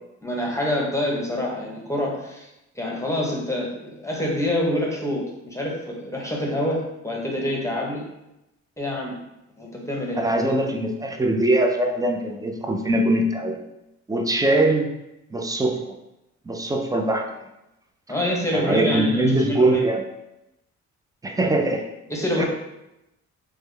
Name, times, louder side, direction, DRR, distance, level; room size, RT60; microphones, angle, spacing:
voice 1, 0.2-2.5 2.7-8.1 8.8-9.2 9.6-10.6 18.1-19.9 22.1-22.5, left 1 dB, 10° left, -2 dB, 0.8 m, -26 dB
voice 2, 10.2-13.6 14.1-14.9 15.3-15.9 16.5-17.3 18.5-20.0 21.2-21.9 22.4-22.5, right 1 dB, 10° right, 3 dB, 0.4 m, -22 dB
3.5 x 2.2 x 3.2 m, 0.88 s
cardioid pair, 90°, 30 cm